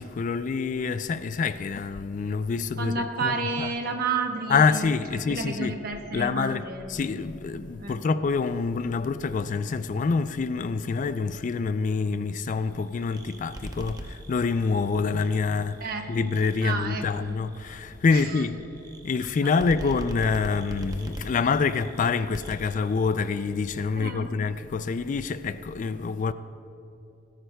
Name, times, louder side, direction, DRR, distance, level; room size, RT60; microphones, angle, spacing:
voice 1, 0.0-3.7 4.5-5.8 6.1-18.6 19.0-26.3, left 4 dB, 40° left, 0.3 m, -26 dB
voice 2, 2.8-6.9 7.8-8.0 15.8-16.0 16.6-17.4 18.1-18.4 19.4-19.5 24.0-24.3, right 4 dB, 50° right, 1.1 m, -31 dB
sound 1, 12.6-23.9, right 1 dB, 20° right, 0.8 m, -43 dB
18.0 x 12.5 x 2.3 m
head